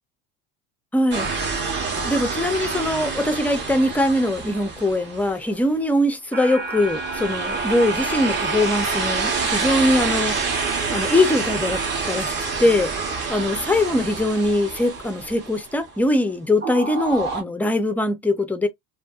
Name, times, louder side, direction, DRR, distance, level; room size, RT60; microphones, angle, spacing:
voice 1, 0.9-1.3 2.0-10.3 10.9-11.8 12.1-12.9 13.3-18.7, left 1 dB, 5° left, 0.4 m, -22 dB
sound 1, 1.1-5.5 6.3-16.0 16.6-17.4, right 4 dB, 35° right, 0.9 m, -27 dB
2.6 x 2.5 x 2.3 m
cardioid pair, 130°, 31 cm